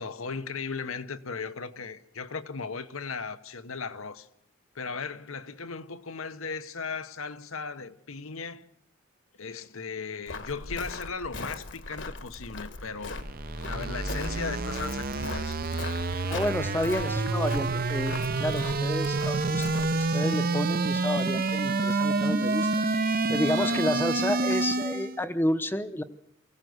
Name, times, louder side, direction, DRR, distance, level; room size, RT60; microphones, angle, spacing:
voice 1, 0.0-4.3 4.7-8.7 9.4-13.2 13.6-15.6 23.6-23.8, left 5 dB, 75° left, 1.1 m, -37 dB
Walk footsteps, 10.3-20.0, left 3 dB, 55° left, 1.4 m, -40 dB
sound 1, 12.9-25.2, right 3 dB, 40° right, 0.7 m, -28 dB
voice 2, 16.3-22.7 23.3-26.0, left 1 dB, 10° left, 0.8 m, -30 dB
23.5 x 16.0 x 7.9 m
head